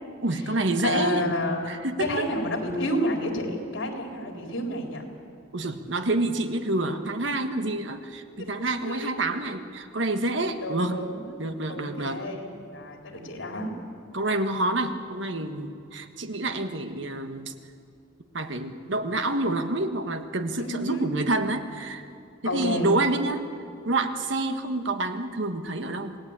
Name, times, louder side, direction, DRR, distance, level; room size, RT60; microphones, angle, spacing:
voice 1, 0.2-1.3 1.7-2.3 5.5-11.0 11.4-12.2 14.1-17.5 18.3-22.1 22.4-23.4 23.8-26.2, right 2 dB, 70° right, 7 dB, 1.5 m, -28 dB
voice 2, 0.8-1.7 2.0-5.0 8.4-8.5 8.9-9.1 10.6-11.4 11.7-13.7 20.6-21.1 22.4-22.9, left 1 dB, 80° left, 2 dB, 4.0 m, -30 dB
27.0 x 18.5 x 8.9 m, 2.5 s
head